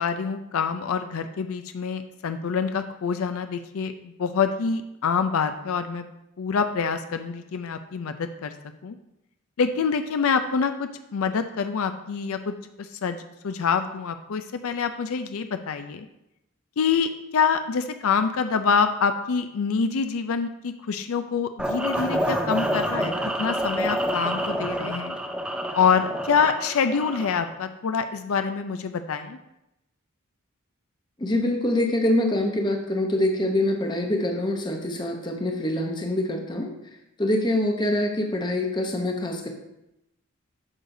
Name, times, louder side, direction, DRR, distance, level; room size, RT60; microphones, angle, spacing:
voice 1, 0.0-6.1 6.4-8.5 8.8-9.0 9.6-16.1 16.8-23.1 23.4-25.2 25.7-29.4, left 6 dB, 75° left, 8 dB, 0.4 m, -26 dB
sound 1, 21.6-27.5, equal, 5° right, 0.4 m, -28 dB
voice 2, 31.2-36.7 37.2-39.5, left 1 dB, 20° left, 3 dB, 0.8 m, -25 dB
8.7 x 6.5 x 2.6 m, 0.87 s
head